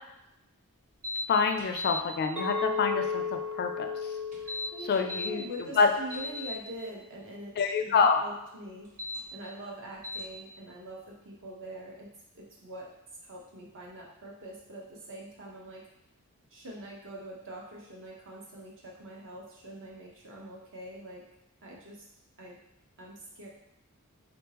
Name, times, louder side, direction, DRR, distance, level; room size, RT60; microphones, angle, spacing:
sound 1, 1.0-1.2 1.6-2.0 4.3-5.3 5.8-6.5 8.8-9.2 10.0-10.2, left 2 dB, 35° right, 1.2 m, -35 dB
voice 1, 1.3-3.9 4.9-5.4 5.8-5.9 7.6-8.2, left 5 dB, 45° left, 5 dB, 0.4 m, -26 dB
Chink clink, 2.4-6.6, left 4 dB, 5° right, 0.7 m, -35 dB
voice 2, 4.7-8.9 9.3-12.9 13.2-15.8 16.5-21.2 21.6-22.1 22.4-22.6 23.0-23.5, right 1 dB, 60° right, -3 dB, 1.0 m, -44 dB
3.9 x 3.6 x 2.9 m, 0.84 s
head